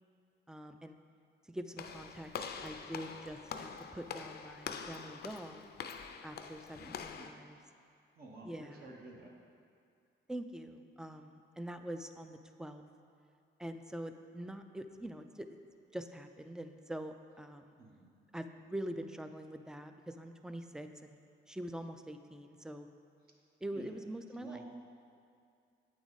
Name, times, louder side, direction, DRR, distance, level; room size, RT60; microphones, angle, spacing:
voice 1, 0.5-1.0 1.5-2.3 2.6-5.7 6.2-7.6 8.4-8.9 10.3-12.8 13.6-15.6 15.9-17.8 18.3-21.2 21.5-22.9 23.6-24.6, right 1 dB, 5° right, 8 dB, 0.3 m, -44 dB
Walk footsteps / Slam, 1.8-7.3, left 6 dB, 55° left, 0.5 m, -45 dB
voice 2, 6.8-7.2 8.2-9.3 17.8-18.1 23.7-23.9 24.3-24.8, right 2 dB, 50° right, -2 dB, 1.0 m, -51 dB
8.0 x 4.8 x 4.0 m, 2.4 s
cardioid pair, 90°, 20 cm